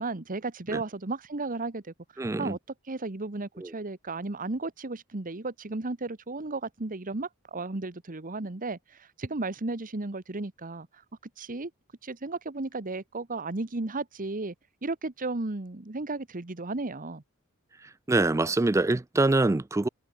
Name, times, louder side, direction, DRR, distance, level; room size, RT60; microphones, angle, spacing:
voice 1, 0.0-1.9 2.4-2.6 2.9-10.9 11.4-11.7 12.0-14.5 14.8-17.2, right 3 dB, 40° right, 1.2 m, -34 dB
voice 2, 2.2-2.6 3.6-3.7 18.1-19.9, right 2 dB, 15° right, 0.4 m, -24 dB
head